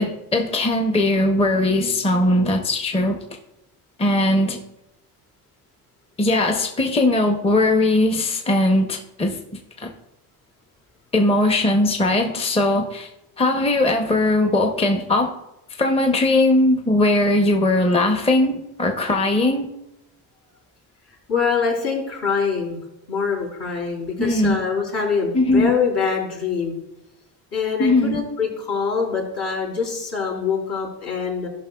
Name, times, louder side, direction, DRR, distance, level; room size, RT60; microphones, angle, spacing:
voice 1, 0.0-3.2 4.0-4.6 6.2-9.4 9.8-9.9 11.1-13.1 13.4-15.3 15.8-19.7 24.2-24.6 25.3-25.7 27.8-28.2, left 2 dB, 15° left, 4 dB, 0.7 m, -19 dB
voice 2, 21.3-22.8 23.1-26.8 27.5-31.5, left 5 dB, 70° left, -3 dB, 3.2 m, -24 dB
14.0 x 5.5 x 2.3 m, 0.90 s
cardioid pair, 95°, 41 cm